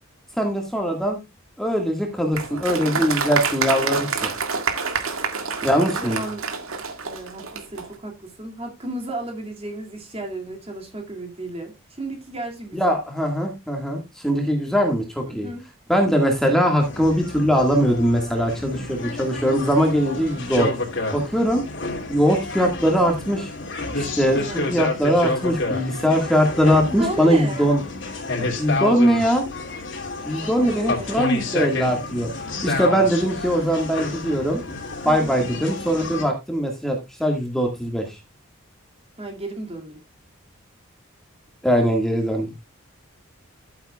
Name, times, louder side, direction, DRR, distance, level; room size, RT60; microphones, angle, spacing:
voice 1, 0.4-1.2 1.6-4.3 5.6-6.2 12.7-15.5 15.9-20.7 21.1-21.6 22.1-23.5 23.9-27.8 28.6-29.4 30.3-32.3 32.6-34.6 35.1-38.2 41.6-42.5, equal, ahead, 1.8 m, -21 dB
Applause, 2.3-7.9, right 5 dB, 80° right, 1.8 m, -27 dB
voice 2, 6.0-6.5 7.0-12.9 15.3-15.6 24.4-24.6 26.8-27.7 30.4-31.2 35.0-35.4 39.2-40.0, right 1 dB, 30° right, 2.3 m, -33 dB
sound 1, 16.8-36.2, left 2 dB, 60° left, 2.8 m, -30 dB
13.5 x 8.0 x 2.3 m
head